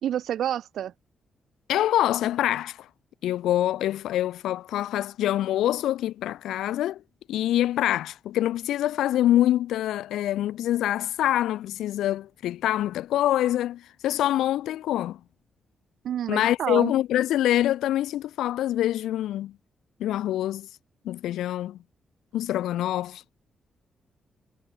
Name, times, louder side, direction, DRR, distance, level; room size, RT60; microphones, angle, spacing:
voice 1, 0.0-0.9 16.0-16.9, right 10 dB, 80° right, 2.8 m, -28 dB
voice 2, 1.7-2.9 3.2-7.0 7.3-15.2 16.3-19.5 20.0-20.7 21.0-21.8 22.3-23.2, left 13 dB, 90° left, 1.3 m, -25 dB
cardioid pair, 70°, 0 cm